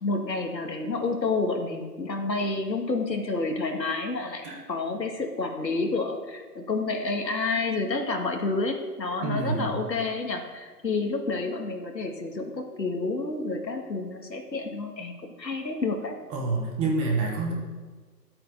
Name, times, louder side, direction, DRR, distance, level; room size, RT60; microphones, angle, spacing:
voice 1, 0.0-16.2, left 3 dB, 90° left, 3 dB, 2.3 m, -29 dB
voice 2, 9.2-9.7 16.3-17.5, right 3 dB, 10° right, -1 dB, 0.9 m, -27 dB
11.5 x 8.7 x 6.6 m, 1.4 s
hypercardioid pair, 145°, 49 cm